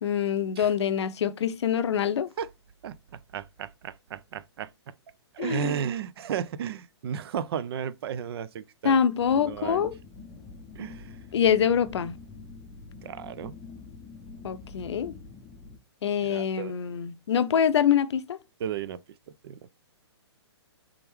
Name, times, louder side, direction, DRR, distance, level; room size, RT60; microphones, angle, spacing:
voice 1, 0.0-2.3 5.4-5.7 8.8-9.9 11.3-12.2 14.4-15.1 16.0-18.4, left 8 dB, 75° left, 0.5 m, -25 dB
voice 2, 2.8-4.9 5.3-9.9 10.8-11.2 13.0-13.5 16.2-16.7 18.6-19.0 19.4-19.6, right 8 dB, 60° right, 0.4 m, -34 dB
sound 1, 9.2-15.8, left 4 dB, 15° left, 0.5 m, -46 dB
3.5 x 3.4 x 2.9 m
hypercardioid pair, 135°, 15 cm